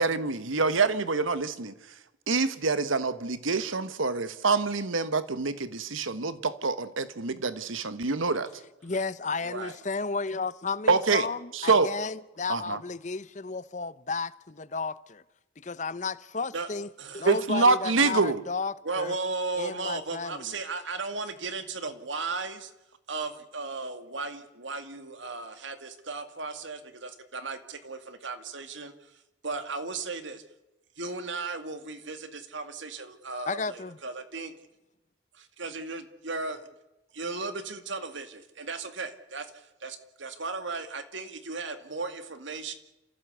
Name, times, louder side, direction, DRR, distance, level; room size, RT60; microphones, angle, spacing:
voice 1, 0.0-1.7 2.3-8.5 10.9-11.3 11.5-11.9 12.5-12.8 17.3-18.4, right 4 dB, 90° right, 1.3 m, -26 dB
voice 2, 8.8-15.2 15.6-16.9 17.1-19.1 19.6-20.5 33.5-34.0, left 4 dB, 35° left, 0.7 m, -33 dB
voice 3, 9.4-9.8 16.5-16.7 17.0-17.3 18.8-22.7 23.1-30.4 31.0-34.5 35.3-36.6 37.1-42.7, right 3 dB, 75° right, 2.2 m, -36 dB
28.5 x 15.0 x 8.2 m
head